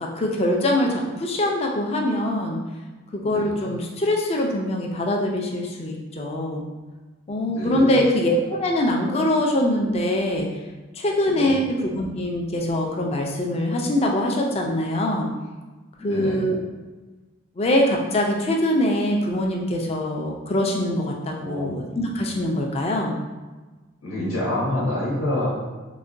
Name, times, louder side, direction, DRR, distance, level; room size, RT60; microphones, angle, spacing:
voice 1, 0.0-2.6 3.1-6.6 7.3-10.5 11.0-15.3 16.0-16.6 17.6-23.1, left 1 dB, 30° left, 0 dB, 0.4 m, -23 dB
voice 2, 3.2-3.8 7.5-8.0 11.2-11.6 16.0-16.4 21.4-22.0 24.0-25.5, left 1 dB, 90° left, -8 dB, 1.0 m, -28 dB
3.9 x 2.2 x 2.5 m, 1.2 s
head